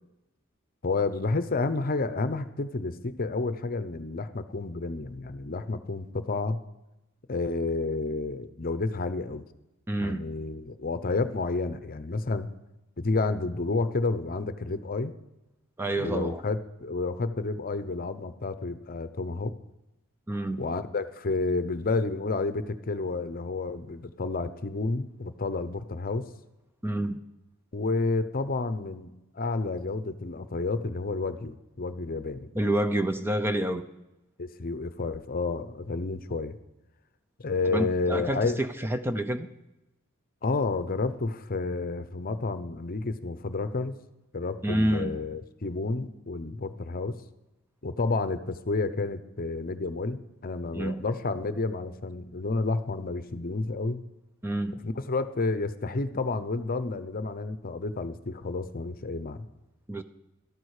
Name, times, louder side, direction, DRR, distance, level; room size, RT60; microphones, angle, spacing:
voice 1, 0.8-6.6 7.3-9.5 10.0-12.5 13.0-15.1 16.0-19.6 20.6-26.3 27.7-32.5 34.4-36.6 37.4-38.6 40.4-43.9 44.3-47.2 47.8-54.0 54.8-59.5, left 3 dB, 45° left, 0.7 m, -30 dB
voice 2, 9.9-10.2 15.8-16.4 20.3-20.6 26.8-27.2 32.5-33.8 37.7-39.5 44.6-45.2 50.7-51.0 54.4-54.8 59.9-60.0, right 1 dB, 10° right, 0.6 m, -28 dB
13.0 x 12.5 x 4.9 m
head